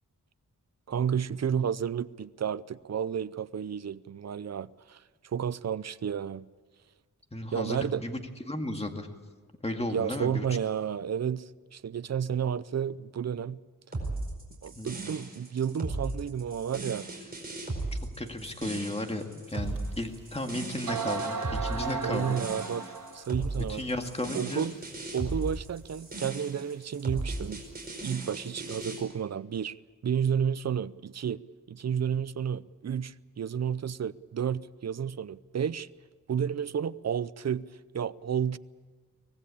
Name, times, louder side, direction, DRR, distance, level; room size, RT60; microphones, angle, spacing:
voice 1, 0.9-5.0 5.3-6.5 7.5-8.0 9.9-13.6 14.6-17.1 22.0-22.8 23.1-23.8 24.3-24.7 25.1-27.6 28.0-29.8 30.0-31.4 31.7-35.9 36.3-38.6, right 8 dB, 55° right, 0.6 m, -31 dB
voice 2, 7.3-9.1 9.6-10.6 14.8-14.9 18.0-22.5 23.6-24.7, left 1 dB, 20° left, 2.1 m, -34 dB
sound 1, 13.9-29.0, right 2 dB, 30° right, 5.0 m, -36 dB
sound 2, 19.8-19.9 20.5-20.6 20.9-23.3, right 5 dB, 80° right, 2.5 m, -34 dB
24.5 x 18.5 x 8.6 m
wide cardioid pair, 130°, 32 cm